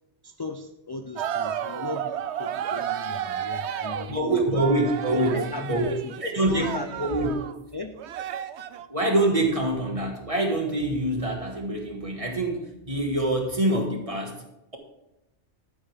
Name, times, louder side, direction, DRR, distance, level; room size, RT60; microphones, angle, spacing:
voice 1, 0.2-4.4 5.1-6.1 6.5-6.9 7.7-7.9, left 3 dB, 35° left, 7 dB, 0.4 m, -37 dB
sound 1, 1.2-7.5 8.0-8.9, right 10 dB, 70° right, 0.9 m, -32 dB
voice 2, 4.1-7.3 8.9-14.4, right 1 dB, 30° right, 2 dB, 1.7 m, -25 dB
11.5 x 9.7 x 3.5 m, 0.89 s
omnidirectional pair, 1.2 m